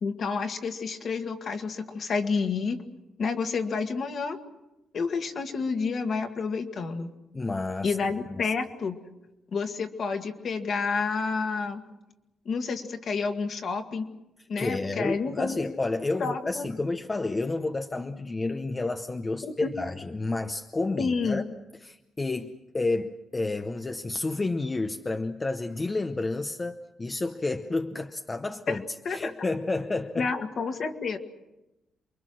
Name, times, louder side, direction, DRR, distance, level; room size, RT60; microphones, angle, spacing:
voice 1, 0.0-2.8 3.2-4.4 4.9-7.1 7.8-9.0 9.5-11.8 12.5-14.1 14.5-15.6 16.2-16.7 19.6-19.7 21.0-21.4 28.7-28.8 29.1-29.3 30.2-31.2, left 4 dB, 45° left, 6 dB, 1.9 m, -29 dB
voice 2, 7.3-8.0 8.3-8.5 14.6-30.3, left 2 dB, 20° left, 7 dB, 0.8 m, -30 dB
28.5 x 23.0 x 6.3 m, 0.96 s
cardioid pair, 160°, 0 cm